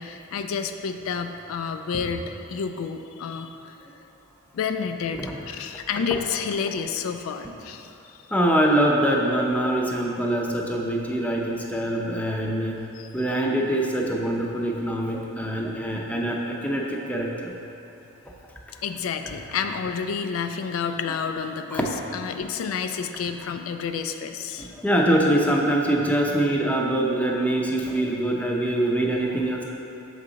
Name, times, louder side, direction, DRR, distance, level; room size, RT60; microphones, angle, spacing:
voice 1, 0.0-3.8 4.5-8.2 12.9-13.1 18.8-24.7, left 6 dB, 75° left, 7 dB, 0.3 m, -30 dB
voice 2, 8.3-12.8 13.1-17.5 21.7-22.0 24.6-29.6, right 1 dB, 5° left, -1 dB, 0.5 m, -24 dB
6.5 x 4.8 x 3.9 m, 2.9 s
head